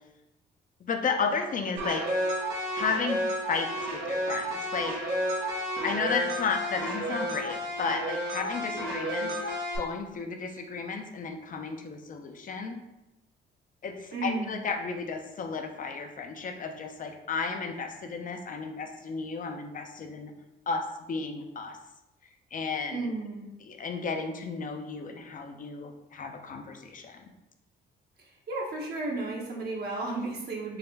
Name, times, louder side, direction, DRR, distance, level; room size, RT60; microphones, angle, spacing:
voice 1, 0.8-2.0 2.7-3.2 3.5-4.9 5.8-9.3 9.8-12.8 13.8-20.3 20.7-21.8 22.5-23.0 23.6-27.3, left 5 dB, 40° left, 5 dB, 0.5 m, -33 dB
sound 1, 1.8-9.8, equal, 90° right, 0.9 m, -31 dB
voice 2, 14.1-14.6 22.9-23.5 28.5-30.8, right 2 dB, 55° right, -2 dB, 0.9 m, -33 dB
4.0 x 2.1 x 3.9 m, 0.95 s
cardioid pair, 90°, 20 cm